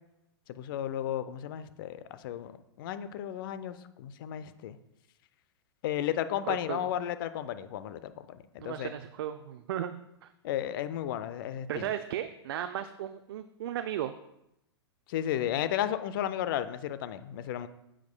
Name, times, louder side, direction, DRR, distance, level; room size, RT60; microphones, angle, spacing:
voice 1, 0.5-4.8 5.8-8.9 10.4-11.9 15.1-17.7, left 11 dB, 50° left, 13 dB, 0.6 m, -34 dB
voice 2, 6.5-6.9 8.6-9.9 10.2-10.3 11.7-14.1, right 11 dB, 60° right, 9 dB, 0.5 m, -35 dB
10.5 x 7.5 x 2.2 m, 0.85 s
figure-of-eight pair, 100°, 14 cm